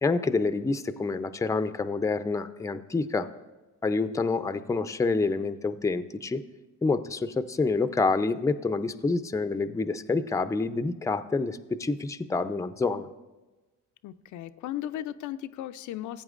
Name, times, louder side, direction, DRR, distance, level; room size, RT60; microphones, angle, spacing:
voice 1, 0.0-3.3 3.8-6.4 6.8-13.1, left 3 dB, 10° left, 10 dB, 0.4 m, -27 dB
voice 2, 14.0-16.2, left 12 dB, 75° left, 10 dB, 0.5 m, -36 dB
16.0 x 8.8 x 2.5 m, 1.2 s
cardioid pair, 90°, 30 cm